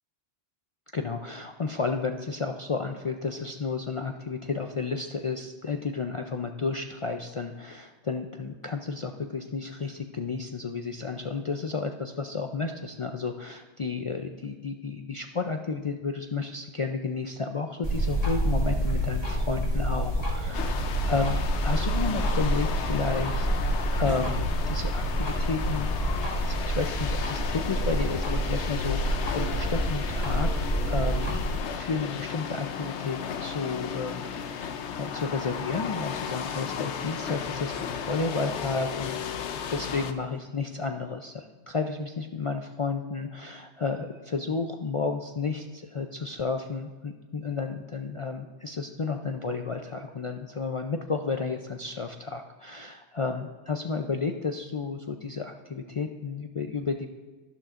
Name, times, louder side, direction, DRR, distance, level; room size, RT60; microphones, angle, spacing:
voice 1, 0.9-21.4 21.6-23.5 23.9-25.9 26.2-31.3 31.7-39.2 39.7-57.1, left 4 dB, 55° left, 5 dB, 0.3 m, -32 dB
sound 1, 17.8-31.6, right 1 dB, 35° left, 2.1 m, -28 dB
sound 2, 20.5-40.1, left 7 dB, 80° left, 1.0 m, -35 dB
12.0 x 11.5 x 2.5 m, 1.3 s
omnidirectional pair, 1.2 m